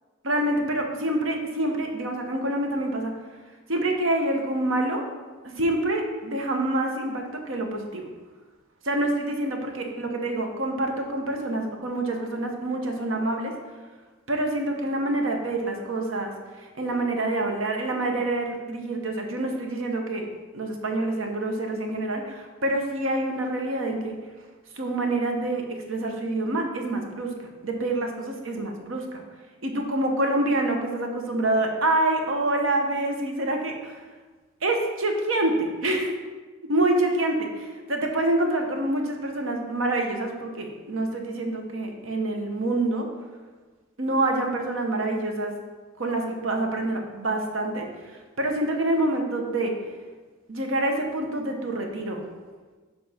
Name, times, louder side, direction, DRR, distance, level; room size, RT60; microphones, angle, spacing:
voice 1, 0.2-3.1 3.7-5.1 5.4-8.1 8.8-13.6 14.3-20.3 20.5-24.2 24.8-27.4 27.6-29.2 29.6-34.0 34.6-36.2 36.6-43.1 44.0-45.6 46.0-49.8 50.5-52.2, right 1 dB, 80° right, 3 dB, 0.9 m, -26 dB
6.8 x 4.1 x 4.2 m, 1.4 s
head